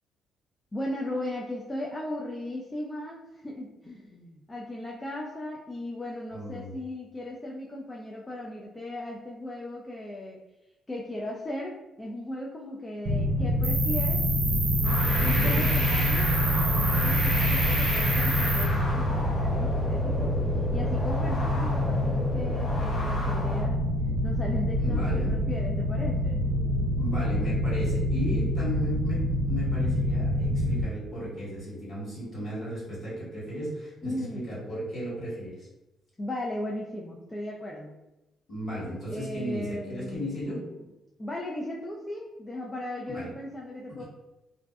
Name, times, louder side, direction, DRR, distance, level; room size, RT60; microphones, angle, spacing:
voice 1, 0.7-10.4 10.9-14.2 14.8-20.4 20.7-23.8 24.2-26.4 34.0-34.5 36.2-38.0 39.1-40.9 41.2-44.1, left 1 dB, 20° left, -2 dB, 0.3 m, -37 dB
voice 2, 6.3-6.7 15.2-15.6 24.8-25.3 27.0-35.7 38.5-40.6 43.1-43.3 44.0-44.1, equal, 55° left, -7 dB, 1.4 m, -35 dB
sound 1, 13.0-30.8, left 1 dB, 70° right, 0.4 m, -26 dB
Cricket, 13.6-18.6, right 3 dB, 40° right, 0.8 m, -30 dB
sound 2, 14.8-23.6, left 1 dB, 75° left, 0.8 m, -34 dB
2.5 x 2.1 x 2.3 m, 1.0 s
cardioid pair, 90°, 0 cm